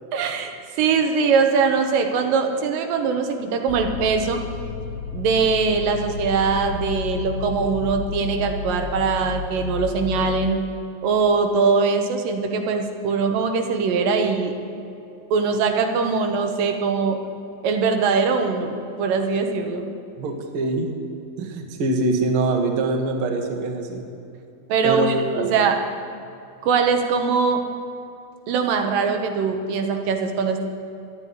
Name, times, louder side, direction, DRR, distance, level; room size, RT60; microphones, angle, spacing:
voice 1, 0.1-0.5 0.8-4.4 5.1-10.6 11.0-14.6 15.3-17.2 17.6-19.9 24.7-25.8 26.6-27.6 28.5-30.7, right 5 dB, 90° right, 4 dB, 2.8 m, -22 dB
sound 1, 3.7-10.5, left 7 dB, 85° left, 2.4 m, -32 dB
voice 2, 20.2-20.9 21.4-24.0 24.8-25.5, right 3 dB, 50° right, 4 dB, 1.8 m, -24 dB
11.5 x 9.7 x 9.4 m, 2.7 s
omnidirectional pair, 3.9 m